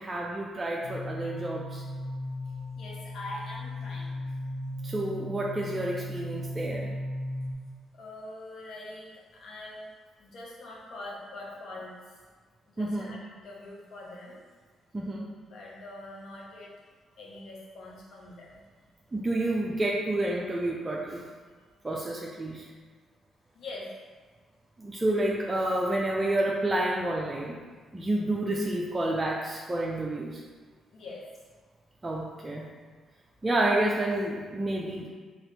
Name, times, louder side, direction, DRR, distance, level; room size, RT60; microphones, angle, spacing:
voice 1, 0.0-1.8 4.8-6.9 12.8-13.2 14.9-15.3 19.1-21.2 21.8-22.7 24.8-27.6 27.9-30.4 32.0-32.7 33.4-35.1, right 1 dB, 25° right, -3 dB, 0.4 m, -29 dB
sound 1, 0.8-7.5, left 1 dB, 85° left, 0.5 m, -37 dB
voice 2, 2.8-4.2 7.9-9.9 10.2-12.0 12.7-13.2 13.4-14.4 15.5-16.7 17.2-18.6 23.5-23.9 30.9-31.2, left 2 dB, 65° left, -4 dB, 0.8 m, -43 dB
2.9 x 2.9 x 3.2 m, 1.5 s
supercardioid pair, 65°, 0 cm